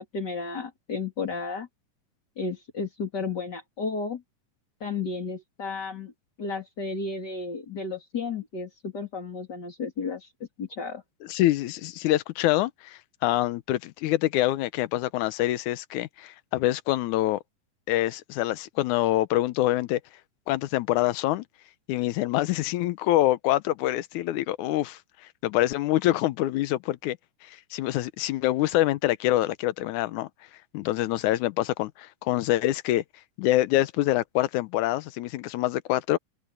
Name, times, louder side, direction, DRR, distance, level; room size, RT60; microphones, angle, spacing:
voice 1, 0.0-1.7 2.4-4.2 4.8-6.1 6.4-10.3 10.6-11.0, left 4 dB, 30° left, 3.3 m, -33 dB
voice 2, 11.3-17.4 17.9-20.0 20.5-21.5 21.9-25.0 25.4-27.2 27.5-30.3 30.7-33.0 33.4-36.2, left 15 dB, 75° left, 2.0 m, -25 dB
open air
omnidirectional pair, 3.8 m